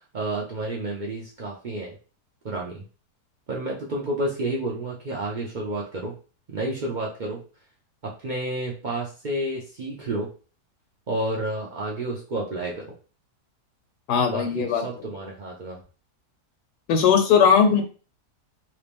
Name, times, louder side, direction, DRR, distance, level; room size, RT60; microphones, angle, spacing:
voice 1, 0.0-2.0 2.4-2.8 3.5-6.1 6.5-7.4 8.0-10.3 11.1-12.9 14.3-15.8, right 1 dB, 85° right, -3 dB, 0.4 m, -30 dB
voice 2, 14.1-14.8 16.9-17.8, left 7 dB, 85° left, 6 dB, 1.3 m, -18 dB
2.9 x 2.9 x 3.4 m, 0.36 s
omnidirectional pair, 1.7 m